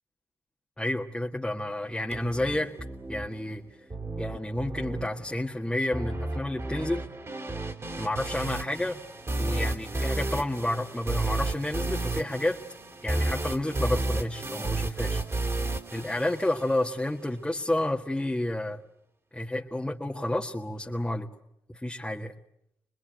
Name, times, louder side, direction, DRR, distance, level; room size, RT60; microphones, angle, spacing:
voice 1, 0.8-2.7 3.1-3.6 4.2-7.0 8.0-9.0 9.4-12.6 13.0-15.2 15.9-18.8 19.3-21.3 21.7-22.3, left 1 dB, 10° left, 0 dB, 1.7 m, -30 dB
sound 1, 2.1-17.1, right 2 dB, 35° right, 3.2 m, -32 dB
24.5 x 21.0 x 9.0 m, 0.78 s
supercardioid pair, 55°, 9 cm